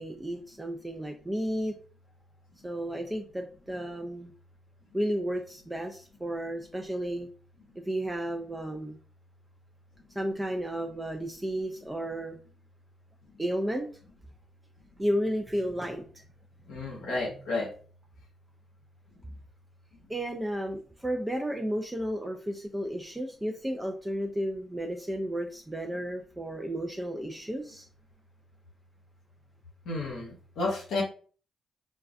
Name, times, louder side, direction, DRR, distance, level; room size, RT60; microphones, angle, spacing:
voice 1, 0.0-1.7 2.6-4.3 4.9-7.3 7.9-9.0 10.2-12.4 13.4-13.9 15.0-16.1 20.1-27.9, equal, 15° right, 3 dB, 0.4 m, -32 dB
voice 2, 16.7-17.7 29.9-31.0, left 2 dB, 75° left, -3 dB, 0.6 m, -31 dB
2.3 x 2.2 x 2.4 m, 0.42 s
hypercardioid pair, 40°, 0 cm